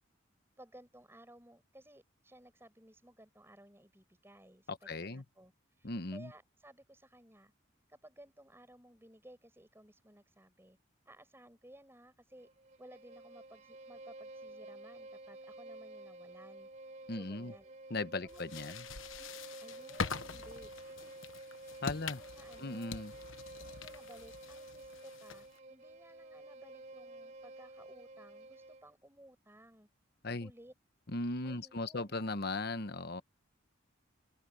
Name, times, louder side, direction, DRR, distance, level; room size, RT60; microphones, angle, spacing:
voice 1, 0.6-5.5 5.8-7.5 7.9-10.8 11.1-12.5 12.8-16.7 17.1-17.7 18.2-18.6 19.2-21.2 21.6-23.1 23.6-29.9 30.4-30.7 31.4-32.1, right 1 dB, 10° right, 7.1 m, -58 dB
voice 2, 4.7-5.2 5.8-6.3 17.1-17.5 17.9-18.8 21.8-22.2 22.6-23.1 30.2-30.5 31.1-33.2, left 2 dB, 50° left, 1.2 m, -38 dB
Bowed string instrument, 12.3-29.0, right 2 dB, 35° right, 3.7 m, -51 dB
sound 1, 18.3-25.6, left 5 dB, 75° left, 1.1 m, -44 dB
open air
head